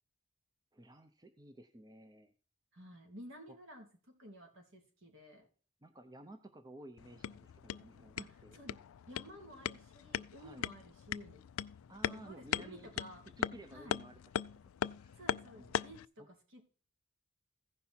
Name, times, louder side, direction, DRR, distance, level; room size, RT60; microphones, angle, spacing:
voice 1, 0.7-2.3 5.8-8.2 8.4-8.6 10.4-10.7 11.9-13.0 13.4-14.2 14.5-15.2 15.5-15.8, right 1 dB, 20° right, 7 dB, 0.6 m, -54 dB
voice 2, 2.7-5.5 8.2-11.4 12.0-13.2 13.7-14.0 15.2-16.6, equal, 65° right, 3 dB, 3.0 m, -53 dB
sound 1, 7.0-16.1, left 9 dB, 70° left, 0.4 m, -40 dB
15.5 x 5.5 x 4.4 m, 0.39 s
head